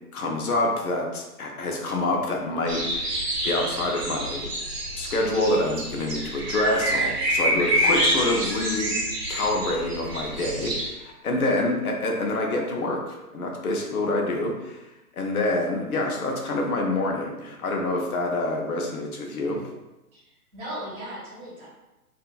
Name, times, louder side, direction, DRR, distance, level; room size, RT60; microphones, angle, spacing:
voice 1, 0.1-4.5 5.0-14.8 15.2-19.7, left 2 dB, 65° left, 1 dB, 0.7 m, -27 dB
sound 1, 2.7-10.9, right 1 dB, 90° right, 0.9 m, -27 dB
voice 2, 20.1-21.7, right 1 dB, 20° right, -7 dB, 1.1 m, -38 dB
2.7 x 2.5 x 2.4 m, 1.0 s
figure-of-eight pair, 125°, 46 cm